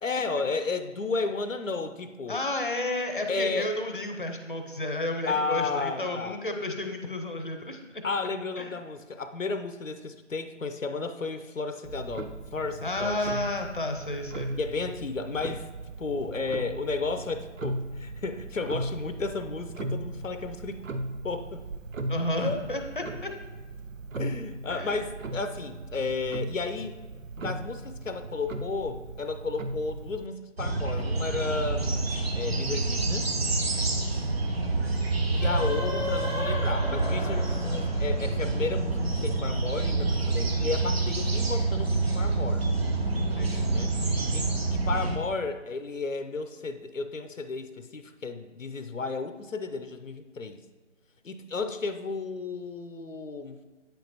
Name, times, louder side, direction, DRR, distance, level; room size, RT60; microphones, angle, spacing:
voice 1, 0.0-2.4 3.3-3.7 5.3-6.4 8.0-13.2 14.6-15.6 16.0-20.8 21.2-21.6 22.4-22.6 24.2-27.0 27.4-33.4 35.3-42.6 43.7-43.9 44.3-50.6 51.2-53.6, left 4 dB, 90° left, 9 dB, 0.7 m, -33 dB
voice 2, 2.3-7.8 8.6-8.7 12.8-14.5 22.1-23.3 24.7-25.0 43.4-43.7, left 1 dB, 40° left, 5 dB, 0.7 m, -31 dB
Clock, 11.8-30.3, right 2 dB, 90° right, 0.7 m, -38 dB
sound 1, 30.6-45.2, right 3 dB, 50° right, 0.9 m, -27 dB
sound 2, 35.2-38.8, left 1 dB, 25° right, 0.9 m, -33 dB
8.9 x 5.3 x 3.0 m, 1.3 s
figure-of-eight pair, 160°, 38 cm